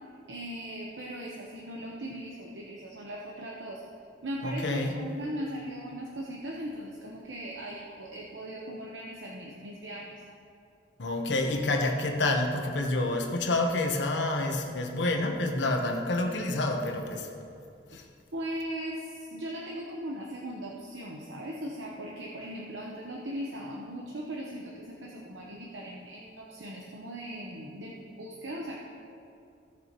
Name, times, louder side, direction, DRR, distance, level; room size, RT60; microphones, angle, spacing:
voice 1, 0.3-3.8 4.2-10.2 17.9-18.0 18.3-28.8, right 1 dB, 85° right, -2 dB, 1.0 m, -39 dB
voice 2, 4.4-5.0 11.0-17.3 17.9-18.0, left 2 dB, 80° left, 2 dB, 1.1 m, -28 dB
16.5 x 7.0 x 3.0 m, 2.5 s
head